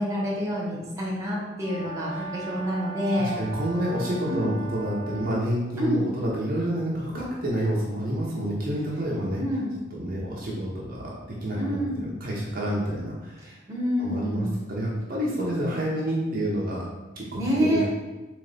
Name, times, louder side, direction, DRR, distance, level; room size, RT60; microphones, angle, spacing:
voice 1, 0.0-3.3 4.3-4.6 5.8-6.1 9.3-9.7 11.5-12.1 13.4-14.5 17.4-17.9, equal, 15° right, -5 dB, 1.0 m, -27 dB
Brass instrument, 1.6-5.4, right 3 dB, 20° left, 1.0 m, -39 dB
voice 2, 3.2-9.4 9.9-13.6 14.0-16.9 17.2-17.9, equal, 45° right, -5 dB, 0.7 m, -29 dB
3.9 x 3.1 x 3.3 m, 1.1 s
head